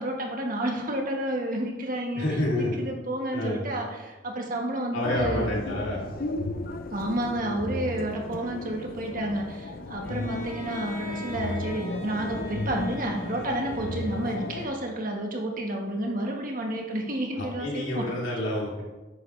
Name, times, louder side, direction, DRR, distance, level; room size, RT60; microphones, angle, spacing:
voice 1, 0.0-5.5 6.9-18.2, right 1 dB, 45° right, 1 dB, 1.5 m, -30 dB
voice 2, 2.1-2.8 3.3-3.6 4.9-6.0 17.4-18.8, left 1 dB, 80° left, -5 dB, 3.1 m, -29 dB
sound 1, 5.0-14.7, left 2 dB, 50° left, 0.7 m, -35 dB
Bowed string instrument, 10.0-15.1, left 2 dB, 15° left, 2.7 m, -43 dB
10.5 x 7.9 x 3.3 m, 1.1 s
head